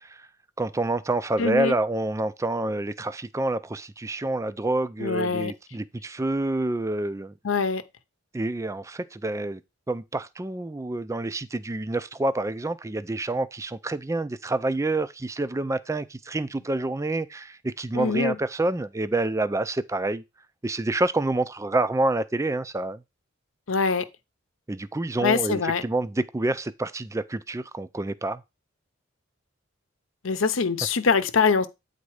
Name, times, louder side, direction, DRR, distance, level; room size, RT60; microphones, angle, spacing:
voice 1, 0.6-7.3 8.3-9.6 9.9-20.2 20.6-23.0 24.7-28.4, right 2 dB, 15° right, 0.4 m, -28 dB
voice 2, 1.4-1.7 5.0-5.5 7.4-7.8 18.0-18.4 23.7-24.0 25.2-25.8 30.2-31.7, left 5 dB, 75° left, 0.8 m, -23 dB
8.8 x 4.1 x 4.8 m
head